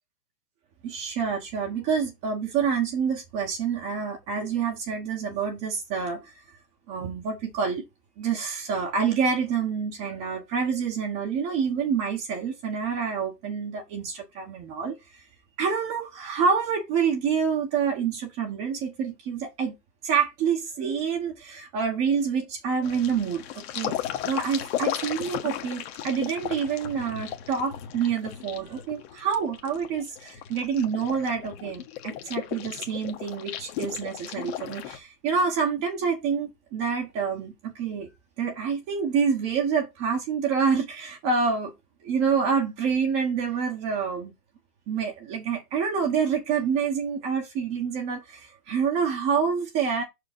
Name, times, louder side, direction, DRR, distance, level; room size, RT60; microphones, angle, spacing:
voice 1, 0.8-6.4 6.9-7.8 8.2-15.2 15.6-19.7 20.0-24.0 24.3-38.1 38.4-41.7 42.0-44.3 44.9-50.0, right 6 dB, 30° right, 1.3 m, -27 dB
sound 1, 22.8-35.0, left 11 dB, 40° left, 1.3 m, -35 dB
5.5 x 4.9 x 5.3 m
hypercardioid pair, 135°, 48 cm